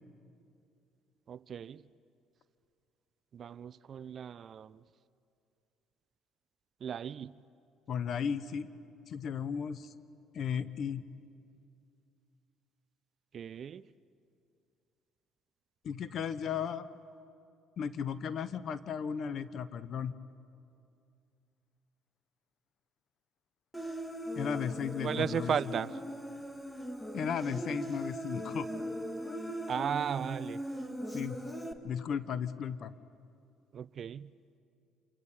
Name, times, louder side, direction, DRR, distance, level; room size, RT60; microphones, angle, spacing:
voice 1, 1.3-1.8 3.3-4.8 6.8-7.3 13.3-13.8 25.0-26.0 29.7-30.6 33.7-34.3, right 8 dB, 50° right, 0.6 m, -35 dB
voice 2, 7.9-8.7 9.1-9.9 10.3-11.0 15.8-16.9 17.8-20.1 24.3-25.5 27.1-28.7 31.1-31.4 31.8-32.9, left 7 dB, 55° left, 1.1 m, -35 dB
Human voice, 23.7-31.7, equal, 5° left, 1.9 m, -39 dB
27.5 x 24.5 x 8.8 m
supercardioid pair, 85°, 0 cm